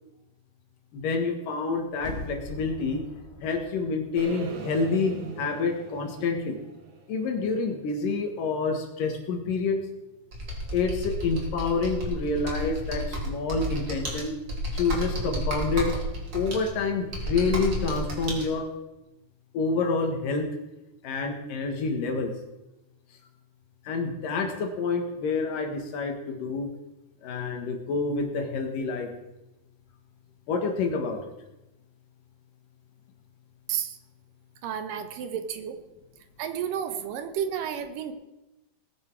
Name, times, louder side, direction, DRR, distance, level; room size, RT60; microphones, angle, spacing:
voice 1, 0.9-3.0 3.4-6.6 7.1-9.8 10.7-14.4 14.7-15.9 16.3-18.7 19.5-20.5 21.0-22.3 23.8-26.7 27.2-29.1 30.5-31.2, left 4 dB, 75° left, 4 dB, 3.2 m, -28 dB
sound 1, 1.9-4.9 5.2-5.3, left 2 dB, 25° left, 1.4 m, -42 dB
sound 2, 4.2-8.2, right 5 dB, 60° right, 2.7 m, -40 dB
Computer keyboard, 10.3-18.4, equal, 35° right, 3.1 m, -32 dB
voice 2, 34.6-35.8 36.4-38.1, right 8 dB, 80° right, 8 dB, 2.7 m, -31 dB
19.5 x 9.7 x 4.7 m, 0.97 s
omnidirectional pair, 3.9 m